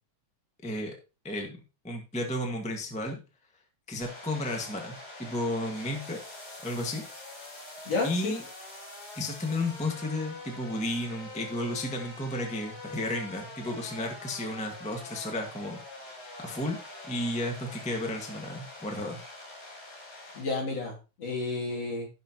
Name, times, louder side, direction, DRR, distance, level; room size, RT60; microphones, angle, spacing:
voice 1, 0.6-0.9 1.2-1.6 1.8-3.2 3.9-6.2 6.6-7.0 8.0-8.4 9.1-16.8 17.0-19.2, left 1 dB, 10° left, 2 dB, 0.4 m, -33 dB
sound 1, 4.0-20.4, left 2 dB, 90° left, 7.3 m, -45 dB
voice 2, 7.9-8.3 20.3-22.1, left 3 dB, 55° left, -2 dB, 3.8 m, -31 dB
16.0 x 5.9 x 2.9 m, 0.31 s
omnidirectional pair, 3.4 m